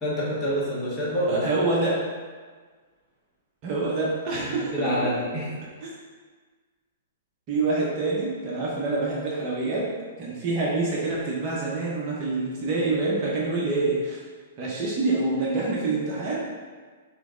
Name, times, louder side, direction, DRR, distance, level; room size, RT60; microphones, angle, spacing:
voice 1, 0.0-1.4 4.7-5.4, equal, 15° left, -8 dB, 1.2 m, -27 dB
voice 2, 1.3-2.0 3.6-5.2 5.8-5.9 7.5-9.9 10.2-14.2 14.6-16.5, right 3 dB, 35° right, -5 dB, 0.8 m, -26 dB
3.3 x 3.0 x 3.7 m, 1.5 s
hypercardioid pair, 155°, 0 cm